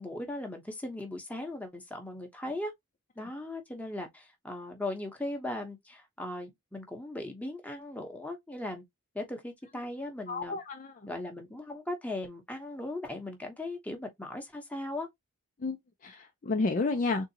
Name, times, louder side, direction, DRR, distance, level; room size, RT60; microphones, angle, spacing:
voice 1, 0.0-2.7 3.2-8.8 9.1-10.6 11.1-15.1, left 1 dB, 5° left, 0.9 m, -38 dB
voice 2, 10.3-11.1 15.6-17.2, left 3 dB, 35° left, 0.4 m, -31 dB
3.8 x 2.7 x 2.7 m
head